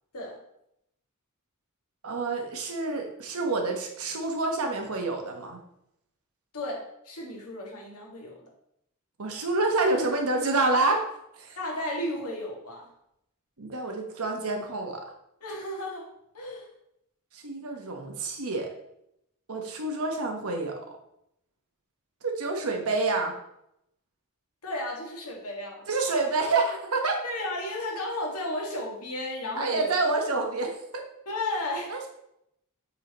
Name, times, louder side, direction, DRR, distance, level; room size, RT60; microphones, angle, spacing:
voice 1, 2.0-5.6 9.2-11.0 11.4-11.6 13.6-15.1 17.3-18.7 19.5-21.0 22.2-23.3 25.9-27.2 29.6-31.0 31.9-32.1, right 3 dB, 70° right, 2 dB, 1.0 m, -28 dB
voice 2, 6.5-8.4 11.6-12.9 15.4-16.1 16.3-16.7 24.6-25.9 27.2-29.9 31.3-31.9, left 1 dB, 85° left, -2 dB, 1.8 m, -33 dB
8.1 x 4.0 x 3.0 m, 0.78 s
head